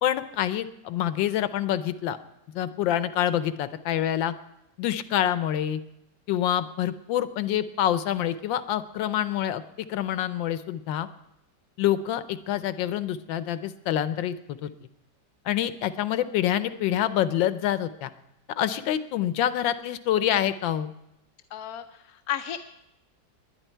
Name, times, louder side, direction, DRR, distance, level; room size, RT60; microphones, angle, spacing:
voice 1, 0.0-2.2 2.5-4.3 4.8-5.8 6.3-9.6 9.9-11.1 11.8-14.3 14.6-14.7 15.5-18.1 18.6-20.9, left 11 dB, 90° left, 13 dB, 1.4 m, -26 dB
voice 2, 21.5-22.6, left 11 dB, 65° left, 7 dB, 0.9 m, -33 dB
20.0 x 10.5 x 4.5 m, 0.85 s
omnidirectional pair, 2.0 m